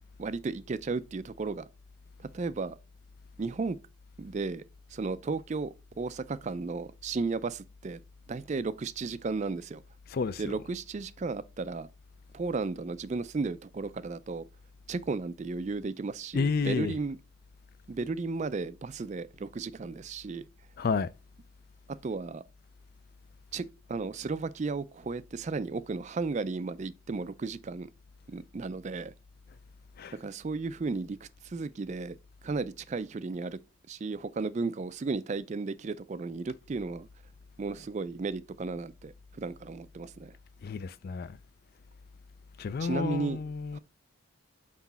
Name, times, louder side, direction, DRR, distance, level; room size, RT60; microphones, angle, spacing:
voice 1, 0.2-1.7 2.2-2.8 3.4-3.8 4.2-4.6 4.9-8.0 8.3-9.8 10.4-11.9 12.3-14.4 14.9-17.2 17.9-20.4 21.9-22.4 23.5-27.9 28.3-29.1 30.2-32.2 32.4-33.6 33.9-37.1 37.6-40.4 42.8-43.4 43.7-43.8, right 4 dB, 35° right, 0.3 m, -34 dB
voice 2, 10.1-10.6 16.3-17.0 20.8-21.1 30.0-30.2 40.6-41.4 42.6-43.8, left 5 dB, 45° left, 0.3 m, -31 dB
6.0 x 4.7 x 4.1 m
head